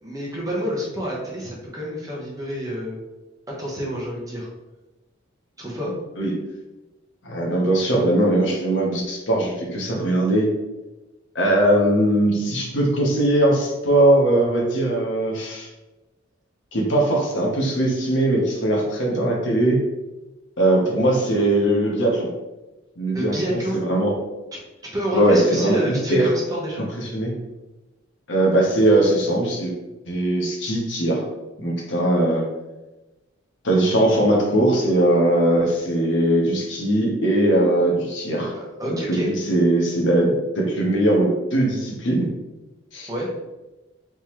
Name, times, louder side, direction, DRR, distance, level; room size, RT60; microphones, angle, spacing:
voice 1, 0.0-3.0 3.5-4.5 5.6-5.9 23.1-23.8 24.9-26.8 38.5-39.3 43.1-43.3, right 1 dB, 15° right, -4 dB, 0.9 m, -28 dB
voice 2, 7.2-10.5 11.3-15.7 16.7-19.8 20.6-22.3 23.0-23.6 23.9-24.1 25.1-25.8 26.1-26.3 27.0-27.3 28.3-29.7 30.0-31.2 31.6-32.4 33.6-38.6 38.9-42.3 42.9-43.1, right 1 dB, 60° left, -2 dB, 0.9 m, -20 dB
3.5 x 3.0 x 3.0 m, 1.1 s
head